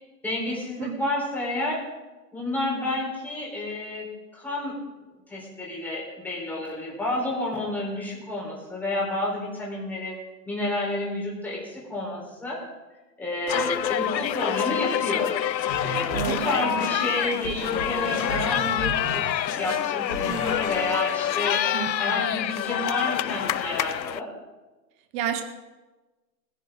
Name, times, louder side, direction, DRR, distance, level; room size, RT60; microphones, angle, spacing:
voice 1, 0.2-1.8 2.3-4.8 5.3-10.2 10.5-12.6 13.2-15.3 15.8-21.6 22.0-24.3, left 1 dB, 5° left, -5 dB, 4.3 m, -30 dB
sound 1, 13.5-24.2, left 11 dB, 90° left, 0.7 m, -27 dB
sound 2, 15.7-20.7, left 1 dB, 35° left, 2.8 m, -35 dB
voice 2, 16.1-16.9 21.7-22.3 25.1-25.4, right 10 dB, 15° right, 8 dB, 0.8 m, -31 dB
21.0 x 10.5 x 3.9 m, 1.2 s
hypercardioid pair, 145°, 50 cm